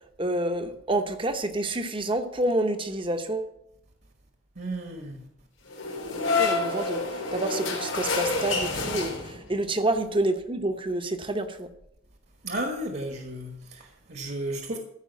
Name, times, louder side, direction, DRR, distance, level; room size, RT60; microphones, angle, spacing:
voice 1, 0.2-3.5 6.4-7.0 7.3-11.7, right 1 dB, 25° right, 0.9 m, -28 dB
voice 2, 4.5-5.2 12.4-14.8, right 1 dB, 50° right, 1.4 m, -33 dB
sound 1, 5.7-9.6, left 3 dB, 90° left, 3.6 m, -28 dB
14.5 x 5.1 x 8.2 m
head